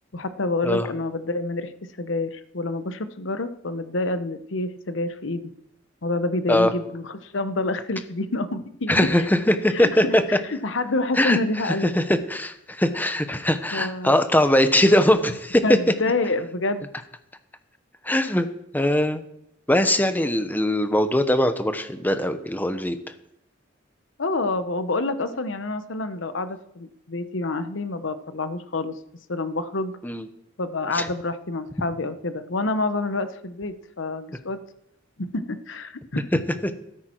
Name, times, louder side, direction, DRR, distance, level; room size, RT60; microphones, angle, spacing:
voice 1, 0.1-1.7 2.0-5.4 6.0-9.3 9.7-11.9 13.7-14.1 14.8-15.0 15.6-16.9 24.2-28.9 29.3-30.0 30.6-34.6 35.2-36.4, left 2 dB, 80° left, 11 dB, 1.0 m, -28 dB
voice 2, 8.9-10.2 11.2-11.4 11.8-15.6 18.0-18.5 18.7-19.2 19.7-23.0 30.0-30.3 30.9-31.1, left 1 dB, 10° left, 9 dB, 0.9 m, -21 dB
13.5 x 13.0 x 4.5 m, 0.78 s
head